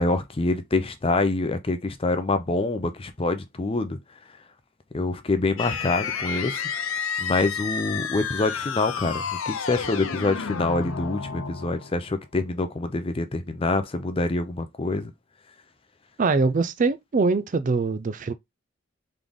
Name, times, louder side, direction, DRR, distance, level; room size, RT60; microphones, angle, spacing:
voice 1, 0.0-4.0 4.9-15.1, left 2 dB, 25° left, 0.5 m, -26 dB
sound 1, 5.6-12.1, left 6 dB, 80° left, 0.6 m, -31 dB
voice 2, 16.2-18.3, right 4 dB, 40° right, 0.4 m, -23 dB
3.9 x 3.2 x 3.5 m
head